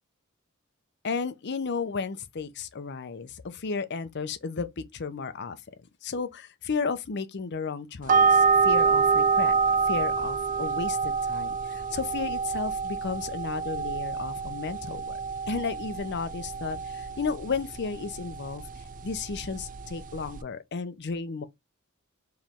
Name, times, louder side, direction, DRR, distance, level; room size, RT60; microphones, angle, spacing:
voice 1, 1.0-5.6 6.0-9.5 9.8-15.2 15.5-18.6 19.0-21.5, left 5 dB, 55° left, 0.6 m, -33 dB
sound 1, 8.1-20.4, right 5 dB, 40° right, 0.4 m, -27 dB
4.7 x 3.0 x 3.5 m
head